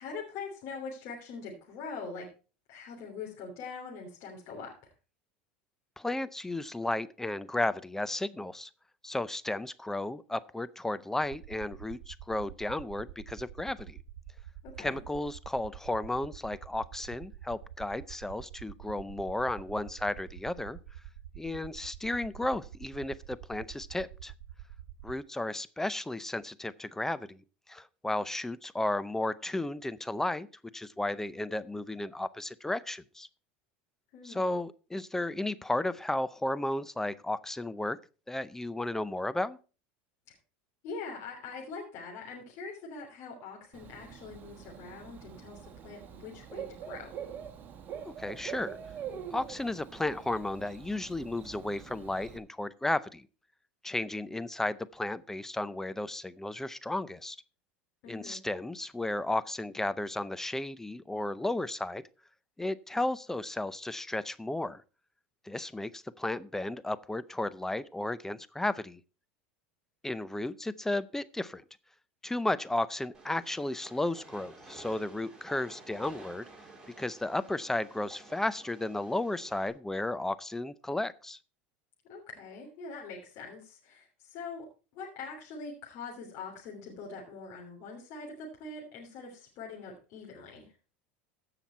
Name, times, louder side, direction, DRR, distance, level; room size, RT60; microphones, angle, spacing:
voice 1, 0.0-2.3 2.7-4.9 14.6-15.0 34.1-34.6 40.8-47.1 58.0-58.4 82.1-84.7 84.9-90.7, left 4 dB, 60° left, -2 dB, 3.2 m, -43 dB
voice 2, 6.0-8.7 9.0-14.0 14.8-20.8 21.4-24.3 25.0-27.4 27.7-30.5 30.7-33.3 34.2-38.0 38.3-39.6 48.2-48.8 49.3-53.3 53.8-57.4 58.1-62.0 62.6-64.8 65.4-69.0 70.0-71.6 72.2-76.4 77.0-81.4, left 2 dB, 10° left, 16 dB, 0.5 m, -34 dB
sound 1, 11.2-25.2, right 12 dB, 80° right, 0.7 m, -47 dB
Bird / Cricket, 43.7-52.4, right 8 dB, 40° right, 2.0 m, -44 dB
Train, 73.1-79.7, right 3 dB, 15° right, 3.6 m, -52 dB
15.5 x 5.8 x 4.4 m, 0.35 s
supercardioid pair, 105°, 5 cm